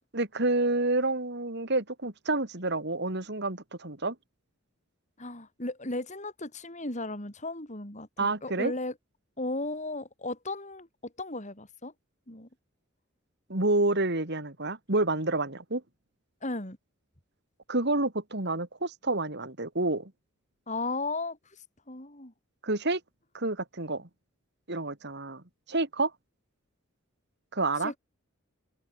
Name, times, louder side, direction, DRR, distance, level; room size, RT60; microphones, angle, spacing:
voice 1, 0.1-4.1 8.2-8.7 13.5-15.8 17.7-20.1 22.6-23.0 23.3-24.1 24.7-26.1 27.5-27.9, right 2 dB, 55° right, 3.1 m, -29 dB
voice 2, 5.2-8.9 9.4-11.9 12.3-12.5 16.4-16.8 20.7-21.4 21.9-22.3 27.8-28.0, left 2 dB, 35° left, 5.0 m, -35 dB
open air
head